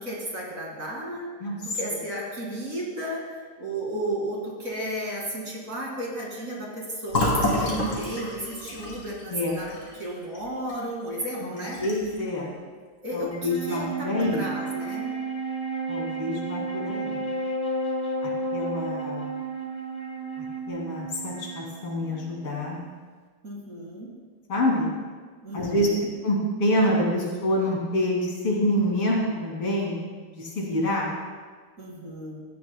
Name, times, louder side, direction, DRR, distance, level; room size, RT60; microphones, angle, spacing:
voice 1, 0.0-1.3 1.6-11.8 13.0-15.1 23.4-24.1 25.4-26.0 31.8-32.4, right 1 dB, 40° right, -3 dB, 2.4 m, -33 dB
voice 2, 1.4-1.8 9.3-9.6 11.4-12.5 13.1-14.5 15.9-17.3 18.2-19.4 20.4-22.8 24.5-24.9 25.5-25.9 26.2-30.0 30.3-31.1, left 1 dB, 85° left, -3 dB, 3.4 m, -27 dB
Fill (with liquid), 7.1-10.8 11.1-11.2 11.6-12.2, left 1 dB, 45° left, 3.3 m, -28 dB
Wind instrument woodwind instrument, 13.3-22.8, right 2 dB, 20° left, 1.1 m, -32 dB
17.0 x 12.5 x 2.2 m, 1.5 s
omnidirectional pair, 2.4 m